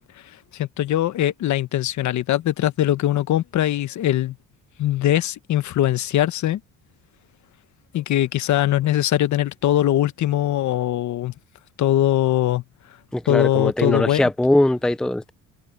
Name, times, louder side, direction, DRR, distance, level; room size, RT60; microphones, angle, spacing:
voice 1, 0.5-4.4 4.8-6.6 7.9-11.3 11.8-12.6 13.3-14.2, left 13 dB, 60° left, 1.2 m, -21 dB
voice 2, 13.1-15.3, left 1 dB, ahead, 0.6 m, -21 dB
cardioid pair, 110°, 32 cm